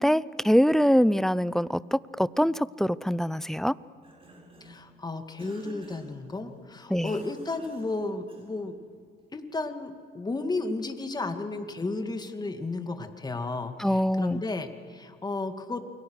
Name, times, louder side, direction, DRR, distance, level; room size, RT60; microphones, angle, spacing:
voice 1, 0.0-3.7 6.9-7.1 13.8-14.4, equal, ahead, 18 dB, 0.5 m, -24 dB
Cough, 3.8-4.9 5.4-6.2 7.0-8.7, right 1 dB, 30° right, 7.1 m, -49 dB
voice 2, 4.6-8.8 9.3-15.8, left 3 dB, 20° left, 7 dB, 2.2 m, -33 dB
29.0 x 23.0 x 6.5 m, 2.2 s
cardioid pair, 95°, 19 cm